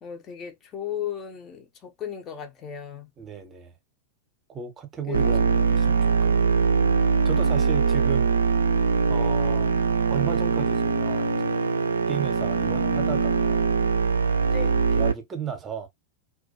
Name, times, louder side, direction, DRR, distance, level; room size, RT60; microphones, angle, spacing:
voice 1, 0.0-3.1 5.1-5.4 14.5-14.8, left 9 dB, 30° left, 0.5 m, -35 dB
voice 2, 3.2-3.7 4.5-6.7 7.2-8.3 9.1-9.8 10.1-11.7 12.1-13.7 14.9-15.9, right 8 dB, 20° right, 0.6 m, -35 dB
sound 1, 5.1-15.1, right 5 dB, 75° right, 0.3 m, -22 dB
2.2 x 2.2 x 2.7 m
figure-of-eight pair, 90°, 0 cm